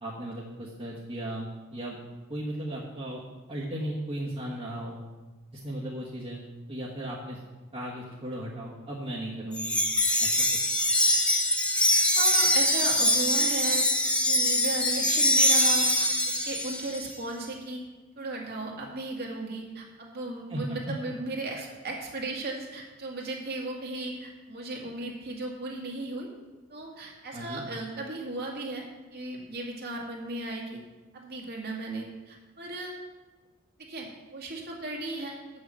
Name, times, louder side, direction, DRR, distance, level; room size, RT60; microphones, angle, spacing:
voice 1, 0.0-2.0 2.3-3.2 3.5-5.0 5.5-6.4 6.7-7.4 7.7-9.8 10.2-10.4 20.5-20.9 27.3-27.6, right 1 dB, 25° right, -6 dB, 1.3 m, -36 dB
Wind chime, 9.5-17.0, left 1 dB, 5° left, 0.8 m, -23 dB
voice 2, 12.1-13.9 14.2-17.8 18.2-26.3 26.7-28.9 29.1-30.8 31.1-32.9 33.9-35.4, right 2 dB, 50° right, -1 dB, 2.0 m, -36 dB
7.7 x 6.4 x 7.4 m, 1.2 s
head